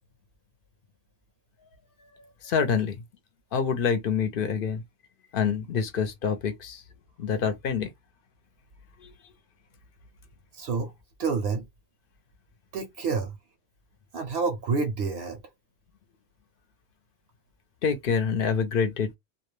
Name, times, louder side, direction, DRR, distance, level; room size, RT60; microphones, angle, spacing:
voice 1, 2.4-3.0 3.5-4.8 5.3-6.8 7.2-7.9 9.0-9.1 17.8-19.2, left 6 dB, 60° left, 0.7 m, -26 dB
voice 2, 10.5-10.9 11.2-11.7 12.7-13.4 14.1-15.4, right 4 dB, 75° right, 0.8 m, -28 dB
2.3 x 2.1 x 3.0 m
omnidirectional pair, 1.1 m